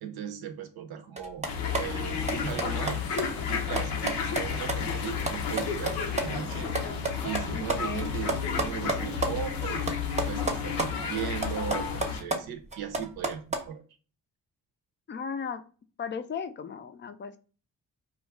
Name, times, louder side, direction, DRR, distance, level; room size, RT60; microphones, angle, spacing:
voice 1, 0.0-1.5 1.8-3.0 3.5-6.7 7.2-9.9 10.2-13.8, right 8 dB, 70° right, 7 dB, 0.6 m, -37 dB
sound 1, 1.2-6.2 6.5-9.3 9.6-10.9 11.2-13.6, right 3 dB, 15° right, 0.6 m, -31 dB
sound 2, 1.5-12.2, left 6 dB, 85° left, 0.6 m, -32 dB
voice 2, 7.5-8.1 15.1-15.6 16.0-17.4, left 6 dB, 30° left, 11 dB, 0.4 m, -36 dB
2.3 x 2.0 x 3.4 m, 0.38 s
supercardioid pair, 45°, 39 cm